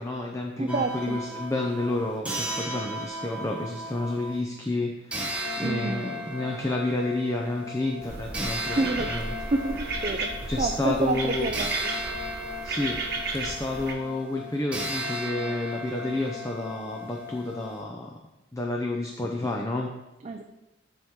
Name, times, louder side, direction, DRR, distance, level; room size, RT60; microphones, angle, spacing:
voice 1, 0.0-10.0 10.5-11.5 12.6-13.0 13.3-18.1 18.5-19.9, left 2 dB, 15° left, 0 dB, 0.6 m, -30 dB
voice 2, 0.6-1.2 5.6-6.1 8.6-9.1 9.5-10.3 10.6-11.9 20.2-20.4, right 2 dB, 35° right, 4 dB, 0.4 m, -28 dB
sound 1, 0.7-4.4 5.1-17.8, equal, 5° right, 1.0 m, -36 dB
sound 2, 8.0-13.9, right 3 dB, 50° right, 1.1 m, -34 dB
10.5 x 4.6 x 3.6 m, 0.99 s
head